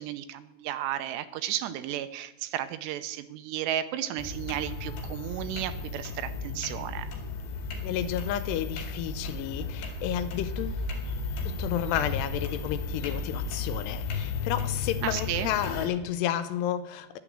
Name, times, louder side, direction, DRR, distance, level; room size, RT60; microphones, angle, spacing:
voice 1, 0.0-7.1 15.0-15.5, right 12 dB, 90° right, 11 dB, 2.9 m, -33 dB
sound 1, 4.2-15.9, left 4 dB, 70° left, 4.2 m, -34 dB
voice 2, 7.8-10.8 11.5-17.2, left 11 dB, 90° left, 11 dB, 2.8 m, -31 dB
10.5 x 10.0 x 7.5 m, 0.89 s
omnidirectional pair, 4.9 m